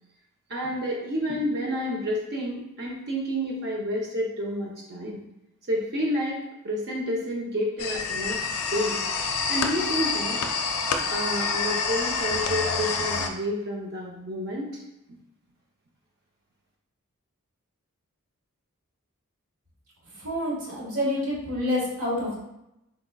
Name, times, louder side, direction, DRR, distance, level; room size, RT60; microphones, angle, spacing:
voice 1, 0.5-5.2 5.7-6.4 6.6-8.4 8.7-9.0 9.5-10.4 11.1-14.8, equal, 45° right, -3 dB, 0.6 m, -29 dB
sound 1, 7.8-13.3, left 5 dB, 80° left, 0.4 m, -27 dB
voice 2, 20.2-22.4, left 1 dB, 75° right, -5 dB, 1.4 m, -28 dB
4.0 x 3.7 x 2.2 m, 0.87 s
head